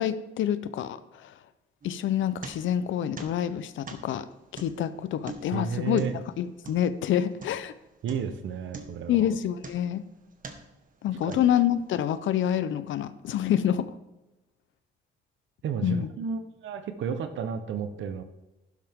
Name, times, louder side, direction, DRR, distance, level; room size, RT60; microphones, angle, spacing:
voice 1, 0.0-1.3 1.8-4.3 4.5-6.0 6.4-7.7 9.1-10.0 11.0-13.9 15.8-16.1, left 10 dB, 75° left, 14 dB, 0.8 m, -27 dB
sound 1, 1.8-2.9 3.2-7.8 8.1-8.4 8.7-10.0 10.4-10.8 11.3-11.9, right 3 dB, 45° right, 1.7 m, -44 dB
voice 2, 5.5-6.1 8.0-9.3 11.2-11.4 15.6-18.2, right 6 dB, 75° right, 8 dB, 1.1 m, -32 dB
12.0 x 10.5 x 3.7 m, 1.0 s
cardioid pair, 90°, 20 cm